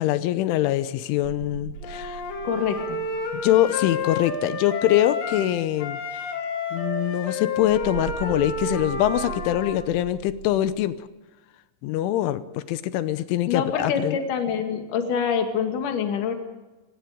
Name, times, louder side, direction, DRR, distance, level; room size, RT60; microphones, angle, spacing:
voice 1, 0.0-2.2 3.4-6.2 6.7-11.0 11.8-14.2, left 13 dB, 90° left, 12 dB, 3.3 m, -24 dB
sound 1, 1.2-4.8 7.6-10.9, right 9 dB, 80° right, 4.1 m, -40 dB
Wind instrument woodwind instrument, 1.8-5.5 5.8-9.8, left 3 dB, 65° left, 5.2 m, -30 dB
voice 2, 2.4-3.0 13.5-16.3, left 7 dB, 50° left, 5 dB, 3.3 m, -26 dB
29.5 x 17.5 x 5.2 m, 1.1 s
omnidirectional pair, 5.4 m